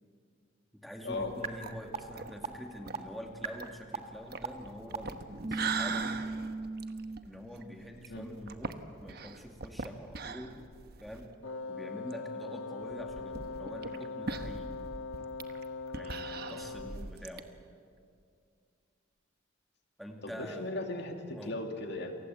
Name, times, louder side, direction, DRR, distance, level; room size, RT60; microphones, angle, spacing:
voice 1, 0.7-6.2 7.2-10.5 11.0-11.3 11.7-14.8 15.9-17.5 20.0-20.7 21.3-21.5, equal, ahead, 1 dB, 2.4 m, -45 dB
sound 1, 1.1-11.3 11.7-11.8 12.1-12.2 12.9-17.4, right 4 dB, 55° right, 1.3 m, -41 dB
sound 2, 1.4-1.5 1.9-2.0 2.4-2.5 2.9-3.0 3.4-3.5 3.9-4.0 4.4-4.5 4.9-5.0 5.4-7.2, right 4 dB, 35° right, 1.7 m, -36 dB
Wind instrument woodwind instrument, 11.4-17.1, left 4 dB, 85° left, 1.4 m, -41 dB
voice 2, 20.2-22.2, left 2 dB, 60° left, 4 dB, 2.5 m, -37 dB
29.5 x 24.0 x 7.9 m, 2.3 s
head